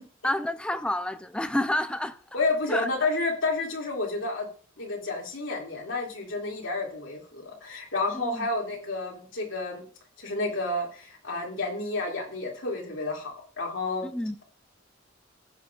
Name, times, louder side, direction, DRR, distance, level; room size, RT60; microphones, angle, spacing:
voice 1, 0.2-2.2 2.7-2.9 8.1-8.5 14.0-14.4, left 1 dB, 5° left, 0.4 m, -29 dB
voice 2, 2.3-4.5 4.8-9.8 10.2-14.1, left 2 dB, 85° left, 2.4 m, -30 dB
15.0 x 6.2 x 2.4 m
head